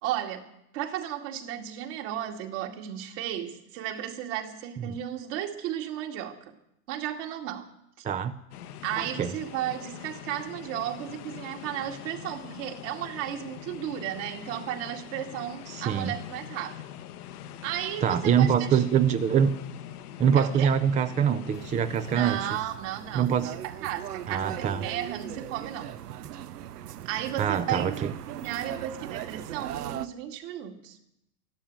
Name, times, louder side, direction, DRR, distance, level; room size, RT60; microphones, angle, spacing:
voice 1, 0.0-0.5 0.7-6.5 6.9-7.7 8.0-8.1 8.8-16.8 17.6-18.8 20.3-20.7 22.1-25.9 27.0-31.0, right 11 dB, 55° right, 2.4 m, -34 dB
sound 1, 8.5-22.6, left 11 dB, 75° left, 1.2 m, -43 dB
voice 2, 9.0-9.3 15.7-16.1 18.0-19.6 20.2-22.5 23.1-23.5 24.3-24.8 27.4-28.1, right 8 dB, 15° right, 0.5 m, -24 dB
sound 2, 21.5-30.1, right 11 dB, 80° right, 0.9 m, -39 dB
13.0 x 12.0 x 8.9 m
hypercardioid pair, 115°, 46 cm